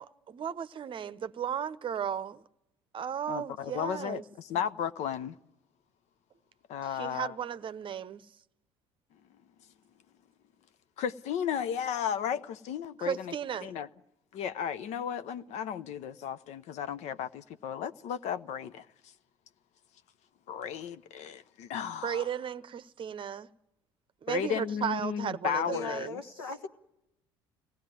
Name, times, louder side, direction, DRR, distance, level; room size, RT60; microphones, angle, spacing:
voice 1, 0.0-2.4 2.9-4.2 6.9-8.2 13.0-13.7 22.0-23.5 24.2-26.2, right 8 dB, 40° right, 0.8 m, -35 dB
voice 2, 3.3-5.4 6.7-7.3 11.0-13.3 13.6-13.9 14.3-18.9 20.5-22.3 24.3-26.1, left 8 dB, 60° left, 0.8 m, -34 dB
voice 3, 25.7-26.7, left 5 dB, 80° left, 1.3 m, -38 dB
23.0 x 17.5 x 9.2 m
hypercardioid pair, 60°, 13 cm